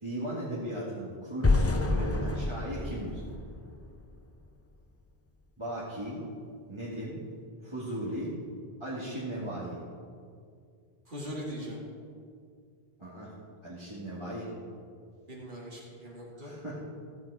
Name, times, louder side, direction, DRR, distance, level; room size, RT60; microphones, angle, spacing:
voice 1, 0.0-3.2 5.6-6.2 6.7-7.2 7.6-8.3 8.8-9.8 13.0-13.3 13.6-14.5 16.4-16.8, right 1 dB, 30° right, -8 dB, 2.0 m, -37 dB
sound 1, 1.4-4.4, left 2 dB, 20° left, 0.4 m, -28 dB
voice 2, 11.1-11.8 15.3-16.5, equal, 50° right, -3 dB, 2.5 m, -40 dB
15.0 x 8.7 x 4.8 m, 2.2 s
omnidirectional pair, 1.1 m